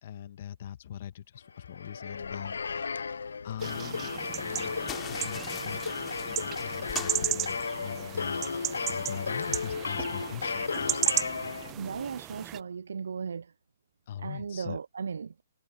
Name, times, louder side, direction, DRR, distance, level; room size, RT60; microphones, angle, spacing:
voice 1, 0.0-5.8 6.3-11.0 14.1-14.8, left 10 dB, 50° left, 1.3 m, -42 dB
sound 1, 1.6-12.0, left 5 dB, 85° left, 0.5 m, -34 dB
sound 2, 3.6-12.6, right 15 dB, 20° right, 0.9 m, -35 dB
sound 3, 4.8-8.2, left 11 dB, 20° left, 2.8 m, -44 dB
voice 2, 11.8-13.5 14.2-15.4, right 6 dB, 75° right, 0.3 m, -36 dB
hypercardioid pair, 145°, 0 cm